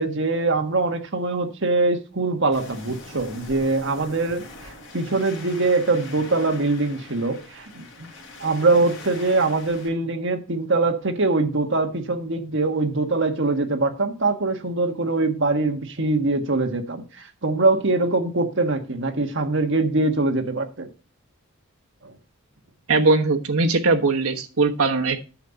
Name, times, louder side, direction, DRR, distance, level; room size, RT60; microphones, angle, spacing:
voice 1, 0.0-4.4 4.9-8.1 8.4-20.9 22.0-22.1, right 3 dB, 60° right, 1.4 m, -23 dB
Waves surf, 2.5-9.9, left 2 dB, 55° left, 4.9 m, -42 dB
voice 2, 22.9-25.2, right 3 dB, 85° right, 1.1 m, -20 dB
10.5 x 7.2 x 3.9 m
head